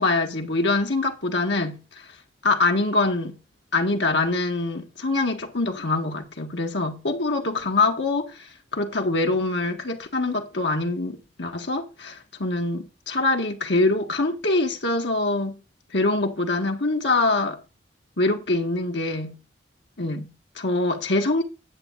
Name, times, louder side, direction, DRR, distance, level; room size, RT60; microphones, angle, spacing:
voice 1, 0.0-1.8 2.4-3.4 3.7-8.3 8.7-15.6 15.9-17.6 18.2-19.4 20.0-21.4, left 2 dB, 75° left, 1.7 m, -24 dB
9.7 x 8.3 x 4.0 m
head